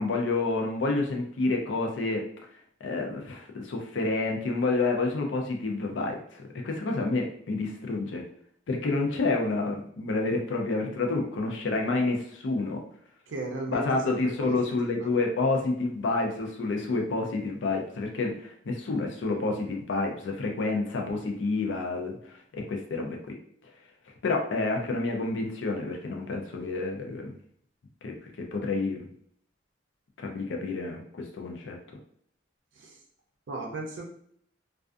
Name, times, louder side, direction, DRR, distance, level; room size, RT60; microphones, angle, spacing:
voice 1, 0.0-2.2 2.8-8.3 8.7-12.8 13.7-23.4 24.2-27.3 28.0-29.1 30.2-31.8, left 3 dB, 75° left, 2 dB, 0.4 m, -29 dB
voice 2, 13.3-14.6 14.8-15.1 32.8-32.9 33.5-34.0, right 2 dB, 75° right, 1 dB, 0.5 m, -35 dB
2.4 x 2.3 x 2.4 m, 0.65 s
head